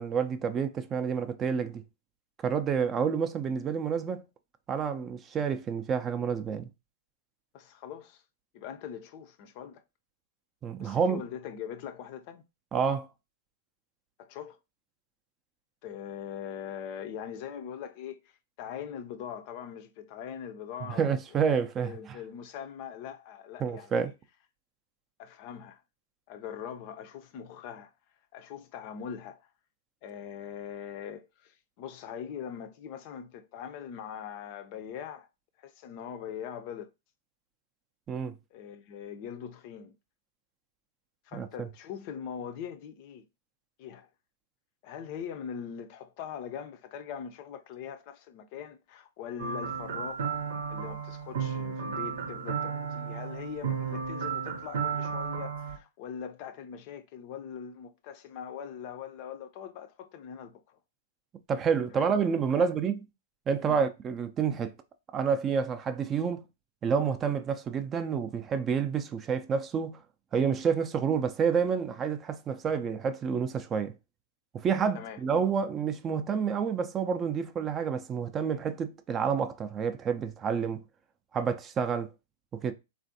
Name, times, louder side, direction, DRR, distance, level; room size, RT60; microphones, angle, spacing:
voice 1, 0.0-1.8 2.4-4.2 4.7-6.7 10.6-11.2 12.7-13.1 21.0-21.9 23.6-24.1 38.1-38.4 41.3-41.7 61.5-63.0 63.5-64.7 65.1-66.4 66.8-70.0 70.3-73.9 74.5-80.8 81.3-82.1 82.5-82.7, right 6 dB, 25° right, 0.4 m, -29 dB
voice 2, 7.5-8.2 8.5-9.8 10.8-12.4 14.2-14.6 15.8-21.5 21.8-24.1 25.2-25.8 26.3-27.9 28.3-29.5 30.0-35.3 35.6-36.9 38.5-39.9 41.2-43.2 43.8-44.1 44.8-50.4 50.7-60.8 61.9-62.1 62.6-62.8 63.7-63.9 74.9-75.2, left 8 dB, 45° left, 0.4 m, -42 dB
sound 1, 49.4-55.8, right 6 dB, 65° right, 0.7 m, -33 dB
3.3 x 2.5 x 2.6 m
hypercardioid pair, 115°, 0 cm